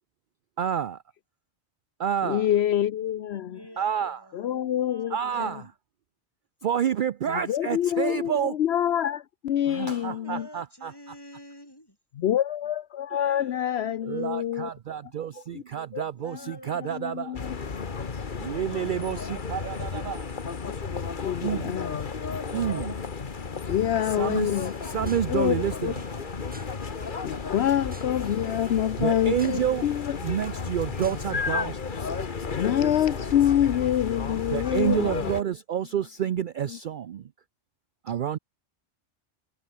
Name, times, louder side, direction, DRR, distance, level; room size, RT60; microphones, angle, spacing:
voice 1, 0.6-1.0 2.0-2.4 3.8-4.2 5.1-5.6 6.6-8.5 9.7-10.9 14.1-17.4 18.4-20.4 21.4-21.8 22.5-23.0 24.2-25.9 29.0-29.8 30.2-32.0 34.5-37.2 38.0-38.4, right 9 dB, 55° right, 0.6 m, -29 dB
voice 2, 2.2-3.6 4.3-5.6 7.3-10.5 12.2-14.7 15.3-15.6 15.9-16.0 16.4-17.6 20.6-20.8 21.2-22.1 22.3-22.5 23.7-24.7 25.0-25.9 27.2-30.2 32.5-35.3 36.7-36.8, left 11 dB, 70° left, 0.9 m, -27 dB
voice 3, 3.0-5.6 7.5-7.9 9.5-12.0 13.1-14.6 16.2-17.2, equal, 20° left, 7.0 m, -48 dB
sound 1, 17.3-35.4, left 5 dB, 45° left, 1.4 m, -33 dB
sound 2, 24.4-31.5, right 1 dB, 10° right, 1.3 m, -49 dB
omnidirectional pair, 1.2 m